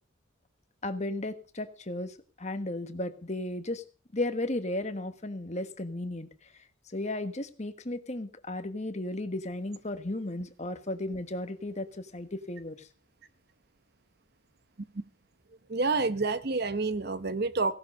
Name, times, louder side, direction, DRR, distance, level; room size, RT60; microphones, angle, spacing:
voice 1, 0.8-3.8 4.1-6.3 6.9-12.9, left 1 dB, 35° left, 1.3 m, -34 dB
voice 2, 15.7-17.7, right 3 dB, 50° right, 0.9 m, -28 dB
17.0 x 11.5 x 5.3 m
head